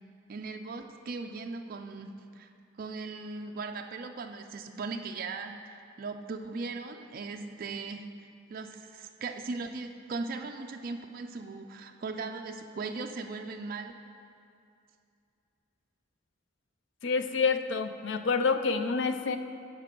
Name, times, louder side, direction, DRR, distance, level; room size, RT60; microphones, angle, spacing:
voice 1, 0.3-2.5 2.8-8.0 8.5-13.9, right 3 dB, 45° right, 4 dB, 0.4 m, -38 dB
voice 2, 17.0-19.4, left 4 dB, 65° left, 9 dB, 0.4 m, -28 dB
11.5 x 5.1 x 4.5 m, 2.5 s
head